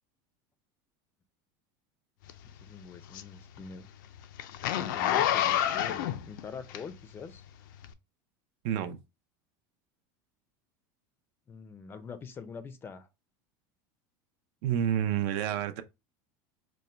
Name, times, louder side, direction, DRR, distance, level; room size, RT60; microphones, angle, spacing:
Zipper (clothing), 2.3-7.2 7.8-7.9, left 11 dB, 85° left, 0.4 m, -29 dB
voice 1, 2.6-3.9 4.6-7.4 11.5-13.1, left 5 dB, 20° left, 0.4 m, -44 dB
voice 2, 8.6-9.0 14.6-15.8, right 10 dB, 60° right, 0.5 m, -29 dB
4.2 x 2.1 x 3.2 m
supercardioid pair, 145°, 10 cm